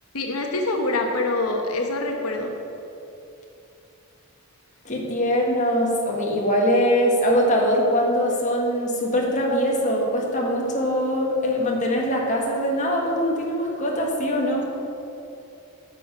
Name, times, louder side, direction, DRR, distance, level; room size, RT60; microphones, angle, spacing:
voice 1, 0.1-2.5 14.4-14.5, left 2 dB, 85° left, 2 dB, 1.2 m, -25 dB
voice 2, 4.8-14.7, equal, 35° left, -2 dB, 1.6 m, -22 dB
9.9 x 5.7 x 8.4 m, 2.8 s
head